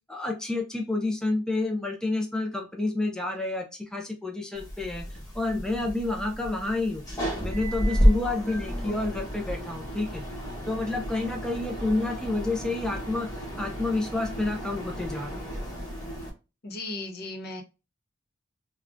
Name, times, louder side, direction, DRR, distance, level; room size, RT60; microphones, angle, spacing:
voice 1, 0.1-7.0 7.4-10.2 10.7-13.3 13.6-15.4, left 2 dB, 5° left, 2 dB, 0.3 m, -29 dB
sound 1, 4.5-16.3, equal, 20° left, 0.9 m, -31 dB
voice 2, 16.6-17.6, left 2 dB, 50° left, 2 dB, 0.7 m, -36 dB
3.5 x 2.2 x 2.4 m, 0.29 s
head